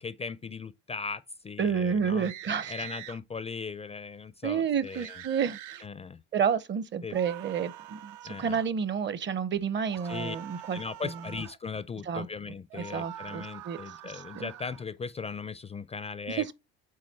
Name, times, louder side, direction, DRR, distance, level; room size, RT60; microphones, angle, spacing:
voice 1, 0.0-2.3 2.7-5.2 5.8-6.2 7.0-7.2 8.2-8.6 10.0-10.4 10.7-16.5, left 5 dB, 20° left, 0.4 m, -38 dB
voice 2, 1.6-2.7 4.4-5.8 6.3-10.8 12.1-12.3 12.8-13.8 14.3-14.5 16.3-16.5, right 7 dB, 40° right, 0.7 m, -30 dB
sound 1, 2.2-3.2 4.9-5.9 7.1-8.7 9.9-11.6 12.7-14.8, right 12 dB, 80° right, 0.7 m, -45 dB
6.5 x 4.1 x 4.1 m
supercardioid pair, 90°, 30 cm